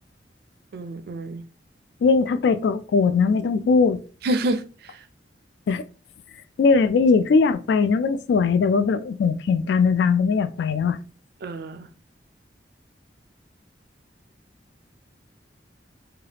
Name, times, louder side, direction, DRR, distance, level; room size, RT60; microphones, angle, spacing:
voice 1, 0.7-1.4 4.2-4.6 11.4-11.9, right 1 dB, 60° right, 0.4 m, -27 dB
voice 2, 2.0-4.0 5.7-5.8 6.6-11.0, left 5 dB, 70° left, 0.3 m, -20 dB
3.2 x 2.3 x 2.8 m
head